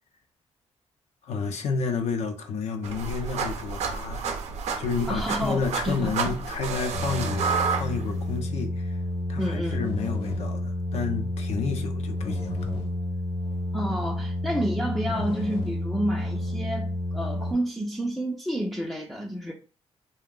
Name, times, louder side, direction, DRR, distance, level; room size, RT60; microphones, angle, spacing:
voice 1, 1.2-4.2 4.8-7.5 7.8-9.0 9.3-12.6, left 5 dB, 80° left, 0.7 m, -30 dB
sound 1, 2.8-8.4, right 5 dB, 80° right, 0.5 m, -30 dB
voice 2, 5.1-6.3 9.4-9.8 13.7-19.5, equal, ahead, 0.4 m, -30 dB
sound 2, 6.9-17.5, left 1 dB, 60° left, 1.0 m, -30 dB
2.7 x 2.2 x 3.7 m
cardioid pair, 100°, 11 cm